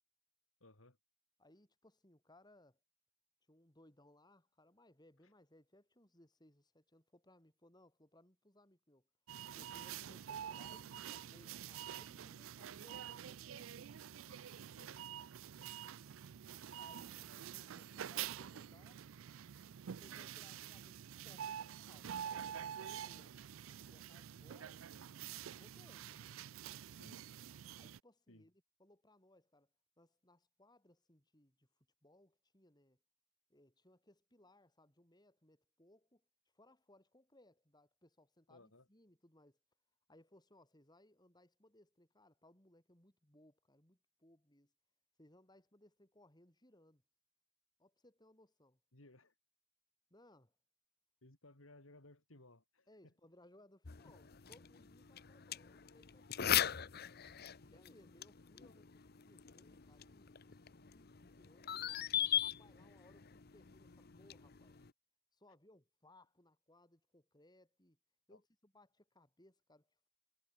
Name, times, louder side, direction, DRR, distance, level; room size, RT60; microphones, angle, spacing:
voice 1, 0.6-1.0 14.8-15.0 15.6-15.7 27.0-27.3 28.3-28.5 38.5-38.9 48.9-49.3 51.2-53.1 57.6-57.7 68.3-68.4, left 2 dB, 85° left, 3.7 m, -61 dB
voice 2, 1.4-2.8 3.5-9.1 9.5-14.0 16.5-19.0 19.9-23.4 23.9-24.8 25.6-26.4 27.8-29.7 30.0-31.7 32.0-33.0 33.5-36.2 36.5-39.6 40.1-44.7 45.2-47.0 47.8-48.8 50.1-50.6 52.9-56.7 57.6-62.1 62.4-64.8 65.3-68.0 68.3-70.1, left 1 dB, 20° left, 5.8 m, -66 dB
sound 1, 9.3-28.0, right 9 dB, 85° right, 0.5 m, -48 dB
sound 2, 53.8-64.9, left 10 dB, 50° left, 0.8 m, -41 dB
head